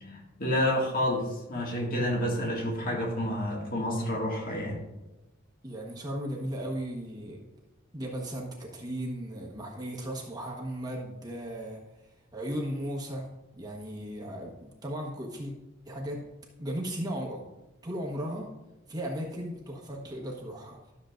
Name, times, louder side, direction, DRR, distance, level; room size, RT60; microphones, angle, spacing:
voice 1, 0.0-4.8, left 1 dB, 45° left, 0 dB, 1.9 m, -29 dB
voice 2, 5.6-7.4 7.9-11.8 12.3-13.3 13.5-15.5 15.8-16.2 16.6-17.4 17.8-18.5 18.9-20.8, equal, 20° right, -1 dB, 1.2 m, -36 dB
12.5 x 7.1 x 2.5 m, 0.99 s
head